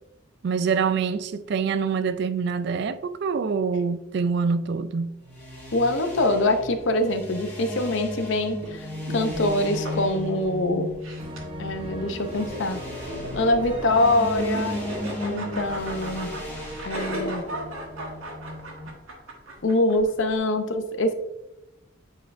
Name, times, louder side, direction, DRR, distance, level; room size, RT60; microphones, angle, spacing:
voice 1, 0.4-5.2, right 5 dB, 50° right, 0.3 m, -25 dB
sound 1, 5.2-18.9, left 1 dB, 10° left, 1.5 m, -36 dB
voice 2, 5.7-10.9 11.6-12.8 13.3-14.8 15.2-16.3 16.8-17.4 19.6-21.1, left 2 dB, 60° left, 0.6 m, -24 dB
sound 2, 6.8-20.4, right 1 dB, 80° right, 1.4 m, -38 dB
sound 3, 11.2-18.8, right 2 dB, 25° right, 0.9 m, -40 dB
9.3 x 4.1 x 2.5 m
head